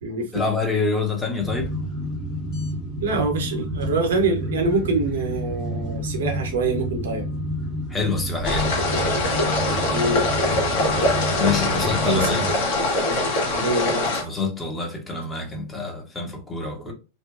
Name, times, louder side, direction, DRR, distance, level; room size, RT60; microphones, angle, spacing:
voice 1, 0.3-1.7 7.9-8.8 11.4-12.4 14.2-16.9, left 4 dB, 10° left, 0.7 m, -26 dB
sound 1, 1.4-12.6, equal, 30° left, 1.1 m, -30 dB
voice 2, 3.0-7.3 9.9-10.3 12.0-12.4 13.5-14.2 16.8-16.9, right 3 dB, 60° right, 0.7 m, -25 dB
sound 2, 8.4-14.2, left 2 dB, 50° left, 0.9 m, -23 dB
2.6 x 2.2 x 2.4 m
figure-of-eight pair, 90°, 0 cm